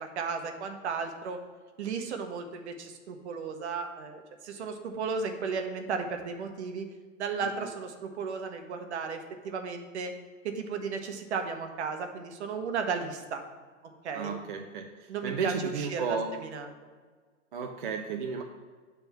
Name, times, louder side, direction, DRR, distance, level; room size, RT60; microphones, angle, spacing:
voice 1, 0.0-1.4 1.8-6.9 7.2-10.1 10.4-13.4 14.0-14.3 15.1-16.7, right 5 dB, 60° right, 5 dB, 1.0 m, -34 dB
voice 2, 7.4-7.7 14.1-16.3 17.5-18.4, right 5 dB, 40° right, 3 dB, 0.4 m, -34 dB
7.5 x 3.5 x 5.7 m, 1.5 s
hypercardioid pair, 170°, 39 cm